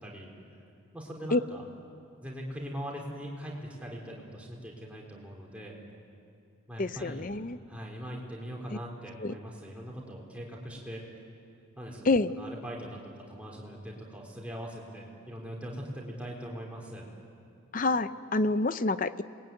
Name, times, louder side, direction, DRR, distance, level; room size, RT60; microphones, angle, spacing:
voice 1, 0.0-0.3 0.9-1.6 2.2-5.8 6.7-7.3 7.7-11.0 11.8-12.1 12.3-17.1, equal, 5° right, -2 dB, 4.0 m, -41 dB
voice 2, 6.8-7.6 8.7-8.8 9.2-9.3 12.0-12.3 17.7-19.2, left 2 dB, 40° left, 13 dB, 0.6 m, -27 dB
28.5 x 21.0 x 9.2 m, 2.5 s
head